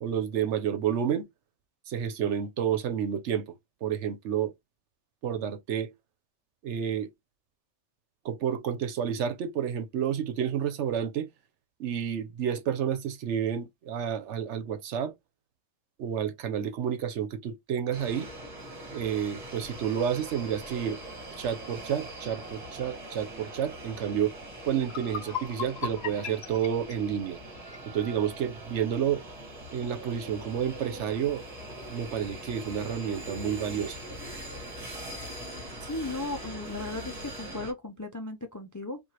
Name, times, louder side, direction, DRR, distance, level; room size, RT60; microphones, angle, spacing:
voice 1, 0.0-1.3 1.9-3.5 3.8-4.5 5.2-5.9 6.6-7.1 8.2-11.3 11.8-15.1 16.0-18.3 18.9-21.0 21.4-24.4 24.6-27.4 27.9-29.2 29.7-31.4 31.9-34.0, right 8 dB, 80° right, 1.0 m, -30 dB
sound 1, 17.9-37.7, right 1 dB, 35° right, 1.4 m, -42 dB
sound 2, 24.4-24.5 24.8-27.9, left 8 dB, 70° left, 0.8 m, -38 dB
voice 2, 35.8-39.0, left 2 dB, 30° left, 0.3 m, -36 dB
4.8 x 2.5 x 2.9 m
omnidirectional pair, 1.2 m